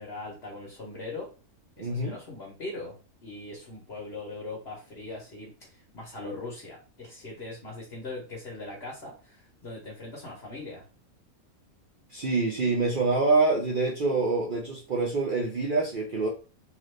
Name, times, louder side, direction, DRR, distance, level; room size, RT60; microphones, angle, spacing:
voice 1, 0.0-1.3 1.8-10.8, left 2 dB, 50° left, 1.1 m, -40 dB
voice 2, 1.8-2.2 12.1-16.3, right 3 dB, 60° right, 0.5 m, -26 dB
2.9 x 2.5 x 3.2 m
omnidirectional pair, 1.6 m